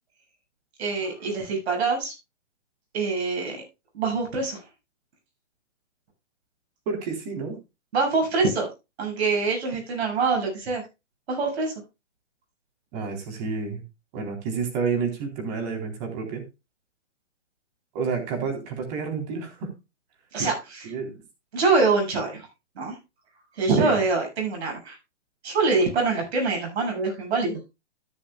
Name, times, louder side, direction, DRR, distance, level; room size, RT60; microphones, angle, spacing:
voice 1, 0.8-2.1 2.9-3.6 3.9-4.6 7.9-8.7 9.0-10.8 11.3-11.7 20.3-20.9 21.5-22.5 22.8-23.0 23.5-25.0 25.4-27.6, right 4 dB, 65° right, 2 dB, 7.4 m, -24 dB
voice 2, 6.9-7.6 12.9-13.8 14.1-16.4 17.9-19.7 20.8-21.2 23.8-23.9, right 5 dB, 35° right, 4 dB, 3.8 m, -29 dB
13.0 x 10.0 x 2.3 m, 0.25 s
hypercardioid pair, 150°, 35 cm